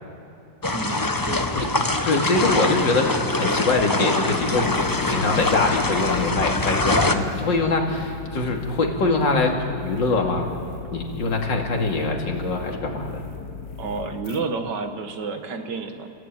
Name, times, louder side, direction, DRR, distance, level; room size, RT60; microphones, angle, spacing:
sound 1, 0.6-7.1, left 2 dB, 20° left, 0.5 m, -24 dB
voice 1, 0.7-1.7 13.8-16.1, right 4 dB, 70° right, 6 dB, 2.1 m, -30 dB
voice 2, 2.0-4.8 5.0-9.6 9.8-10.5 10.9-13.2, left 3 dB, 85° left, 1 dB, 3.0 m, -23 dB
sound 2, 4.4-14.4, left 6 dB, 70° left, 1.6 m, -37 dB
30.0 x 15.0 x 9.0 m, 2.7 s
omnidirectional pair, 1.9 m